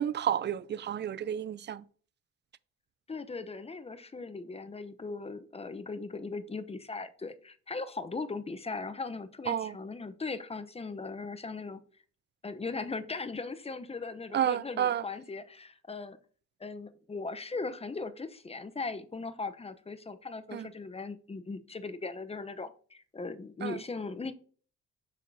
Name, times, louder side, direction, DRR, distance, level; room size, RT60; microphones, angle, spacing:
voice 1, 0.0-1.8 9.5-9.7 14.3-15.0 20.5-20.7 23.6-23.8, right 10 dB, 35° right, 0.4 m, -30 dB
voice 2, 3.1-11.8 12.4-16.2 16.6-24.3, left 3 dB, 20° left, 0.7 m, -39 dB
6.3 x 6.2 x 2.7 m
supercardioid pair, 60°, 29 cm